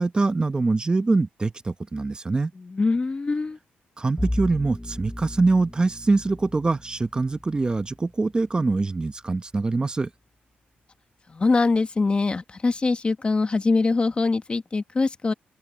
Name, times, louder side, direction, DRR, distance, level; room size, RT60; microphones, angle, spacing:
voice 1, 0.0-2.5 4.0-10.1, right 3 dB, 25° right, 1.0 m, -24 dB
voice 2, 2.6-3.6 11.3-15.3, left 3 dB, 30° left, 1.3 m, -23 dB
Bowed string instrument, 4.2-9.3, left 1 dB, 10° left, 0.9 m, -36 dB
open air
cardioid pair, 100°, 4 cm